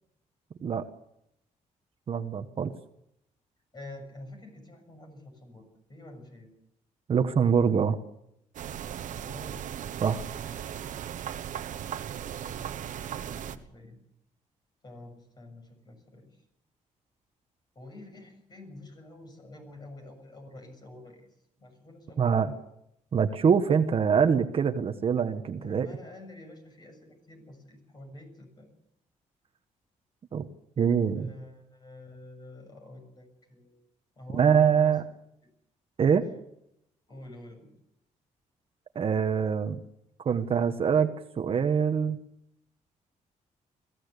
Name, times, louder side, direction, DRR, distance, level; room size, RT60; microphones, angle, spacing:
voice 1, 2.1-2.7 7.1-8.0 10.0-10.2 22.2-22.5 23.1-25.9 30.3-30.5 30.8-31.3 34.4-35.0 36.0-36.2 38.9-39.8 40.2-42.2, right 7 dB, 45° right, 8 dB, 1.3 m, -24 dB
voice 2, 3.7-6.5 9.2-9.7 12.4-14.0 14.8-16.4 17.8-22.6 25.6-28.7 31.1-33.8 34.2-35.0 35.4-35.5 37.1-37.7, left 1 dB, 30° left, 5 dB, 7.1 m, -48 dB
sound 1, 8.5-13.6, right 9 dB, 70° right, 1.3 m, -37 dB
22.0 x 15.5 x 8.3 m, 0.79 s
cardioid pair, 115°, 13 cm